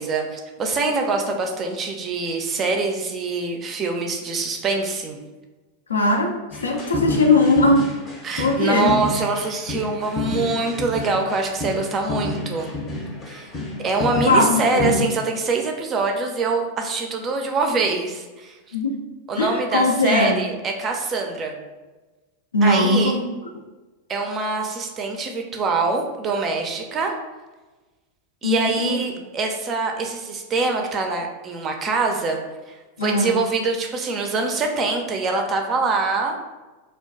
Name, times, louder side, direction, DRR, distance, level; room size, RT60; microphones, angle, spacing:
voice 1, 0.0-5.2 8.2-12.7 13.3-13.5 13.8-18.5 19.3-21.6 22.6-23.1 24.1-27.1 28.4-32.4 33.0-36.4, right 3 dB, 25° right, 3 dB, 0.4 m, -24 dB
voice 2, 5.9-7.9 8.4-8.9 14.3-14.9 18.7-19.0 19.4-20.4 22.5-23.2 28.4-29.0 33.0-33.4, left 2 dB, 75° left, 2 dB, 0.4 m, -19 dB
sound 1, 6.5-15.0, left 2 dB, 20° left, 0.7 m, -29 dB
2.4 x 2.2 x 3.5 m, 1.2 s
figure-of-eight pair, 90°, 0 cm